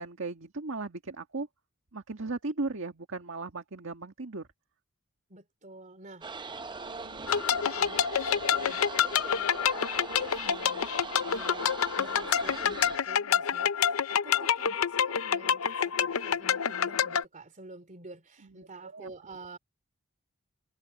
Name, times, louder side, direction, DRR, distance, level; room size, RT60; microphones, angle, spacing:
voice 1, 0.0-1.5 1.9-4.5 18.4-19.1, right 3 dB, 65° right, 1.8 m, -37 dB
voice 2, 5.3-6.3 6.8-11.0 11.2-19.6, right 2 dB, 35° right, 3.0 m, -49 dB
sound 1, 6.2-13.0, right 4 dB, 20° right, 0.7 m, -41 dB
sound 2, 7.3-17.2, left 8 dB, 75° left, 0.7 m, -28 dB
head